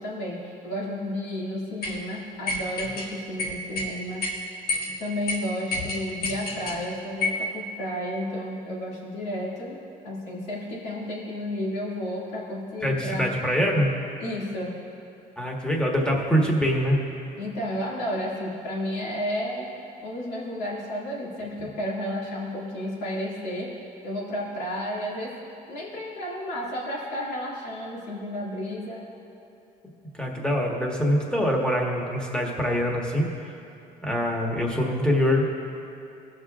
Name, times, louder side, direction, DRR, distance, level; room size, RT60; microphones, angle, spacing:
voice 1, 0.0-4.3 5.0-9.8 10.0-13.3 14.2-14.7 17.4-19.7 20.0-23.7 24.0-25.3 25.7-29.0, left 1 dB, 90° left, -5 dB, 2.2 m, -32 dB
sound 1, 1.8-2.0 2.5-3.1 3.4-3.9 4.2-4.3 4.7-4.9 5.3-5.4 5.7-6.8 7.2-7.4, left 2 dB, 65° left, 1.6 m, -28 dB
voice 2, 12.8-13.9 15.4-17.0 30.1-33.3 34.0-35.5, equal, 5° left, -1 dB, 1.5 m, -24 dB
19.0 x 6.6 x 2.4 m, 2.8 s
cardioid pair, 110°, 17 cm